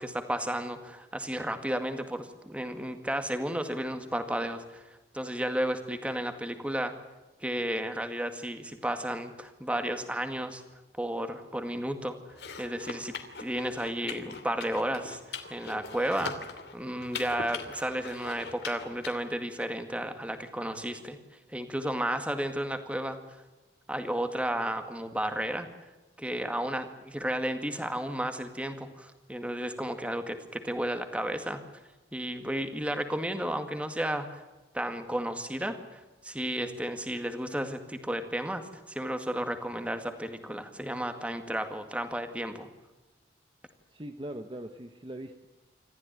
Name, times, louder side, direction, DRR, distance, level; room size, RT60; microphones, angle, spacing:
voice 1, 0.0-4.8 5.1-6.9 7.4-10.6 11.0-12.2 12.6-13.1 13.4-16.4 16.7-21.2 21.5-23.4 23.9-25.7 26.2-31.6 32.1-34.4 34.7-42.7, right 1 dB, 5° right, 7 dB, 2.0 m, -33 dB
sound 1, 12.3-19.1, left 5 dB, 75° left, 2.8 m, -41 dB
voice 2, 43.9-45.5, right 1 dB, 30° right, 6 dB, 1.1 m, -41 dB
26.5 x 14.5 x 9.4 m, 1.1 s
head